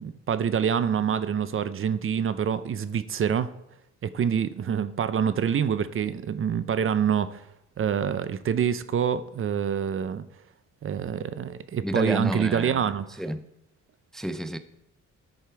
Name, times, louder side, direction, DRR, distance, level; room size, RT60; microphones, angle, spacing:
voice 1, 0.0-3.5 4.0-7.4 7.8-10.2 10.8-13.1, right 8 dB, 45° right, 0.6 m, -26 dB
voice 2, 11.8-12.9 13.2-13.4 14.1-14.6, right 1 dB, ahead, 0.5 m, -30 dB
10.5 x 6.5 x 4.7 m
cardioid pair, 90°, 30 cm